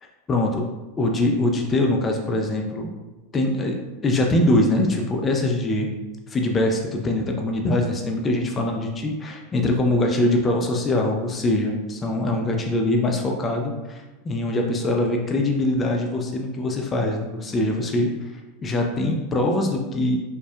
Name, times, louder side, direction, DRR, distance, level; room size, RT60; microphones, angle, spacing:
voice 1, 0.3-0.6 1.0-2.9 3.3-5.9 6.3-18.1 18.6-20.2, left 1 dB, 25° left, 1 dB, 0.4 m, -23 dB
4.2 x 2.2 x 2.3 m, 1.1 s
figure-of-eight pair, 85°, 0 cm